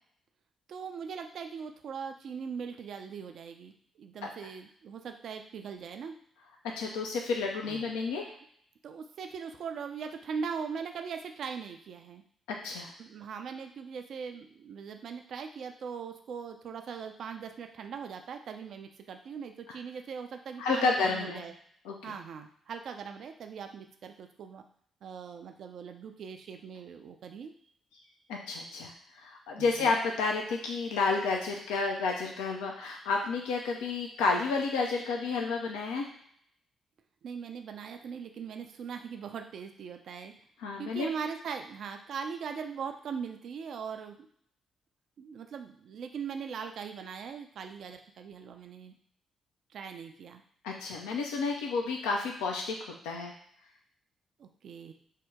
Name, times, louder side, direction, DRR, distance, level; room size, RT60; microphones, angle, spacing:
voice 1, 0.7-6.2 7.7-7.9 8.8-12.2 13.0-21.5 22.0-24.6 25.0-27.5 29.6-30.0 37.2-40.3 40.8-44.2 45.2-48.9 49.7-50.4 54.4-54.9, right 6 dB, 60° right, 6 dB, 0.3 m, -40 dB
voice 2, 6.8-8.3 12.5-12.9 20.6-21.4 21.9-22.1 28.3-36.1 40.6-41.1 50.6-52.8 53.0-53.3, left 4 dB, 75° left, 0 dB, 0.4 m, -31 dB
2.7 x 2.1 x 3.5 m, 0.65 s
hypercardioid pair, 40°, 0 cm